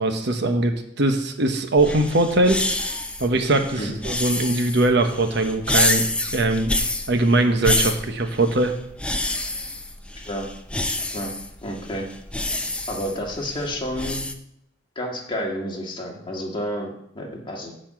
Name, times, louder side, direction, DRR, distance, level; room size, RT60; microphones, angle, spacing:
voice 1, 0.0-2.6 3.2-6.1 6.3-6.7 7.1-8.7, right 2 dB, 60° right, 6 dB, 1.0 m, -21 dB
sound 1, 1.8-14.3, left 2 dB, 5° left, 0.6 m, -28 dB
voice 2, 11.6-12.1 12.9-14.2 15.0-17.8, equal, 25° left, -1 dB, 1.9 m, -30 dB
10.5 x 4.4 x 7.5 m, 0.75 s
head